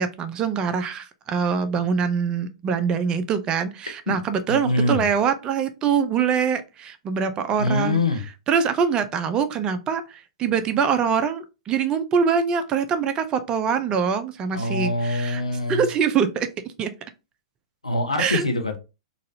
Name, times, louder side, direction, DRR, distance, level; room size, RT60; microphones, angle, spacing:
voice 1, 0.0-8.0 8.5-15.4 15.7-16.5 16.8-16.9 18.2-18.4, right 6 dB, 25° right, 0.5 m, -24 dB
voice 2, 4.5-5.1 7.6-8.2 14.5-15.9 17.8-18.8, left 2 dB, 90° left, 0.8 m, -24 dB
3.9 x 2.5 x 2.7 m
figure-of-eight pair, 105°, 3 cm